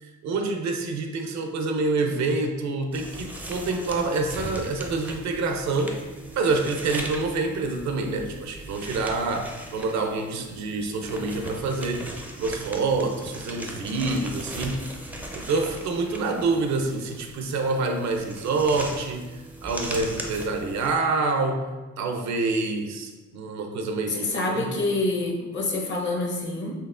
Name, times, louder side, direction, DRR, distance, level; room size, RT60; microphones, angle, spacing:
voice 1, 0.0-6.0 6.3-12.1 12.4-24.7, right 3 dB, 65° right, 5 dB, 0.5 m, -27 dB
sound 1, 2.9-21.0, right 1 dB, 5° right, 0.4 m, -39 dB
voice 2, 24.1-26.7, left 2 dB, 40° left, 0 dB, 0.8 m, -27 dB
4.5 x 2.9 x 2.4 m, 1.2 s
cardioid pair, 90°, 30 cm